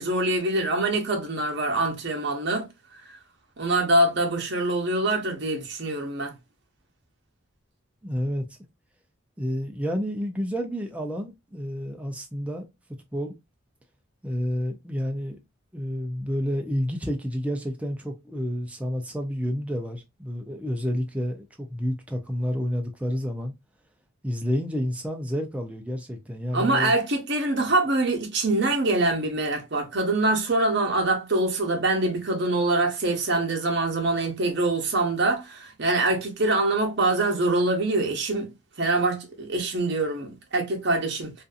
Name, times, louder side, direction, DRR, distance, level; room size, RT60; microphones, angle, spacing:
voice 1, 0.0-2.7 3.6-6.3 26.5-38.5 38.8-41.3, right 2 dB, 55° right, 0.8 m, -24 dB
voice 2, 8.0-8.5 9.4-12.6 13.1-13.3 14.2-15.4 15.7-23.5 24.2-26.9, equal, 5° right, 0.4 m, -29 dB
2.6 x 2.5 x 2.4 m
head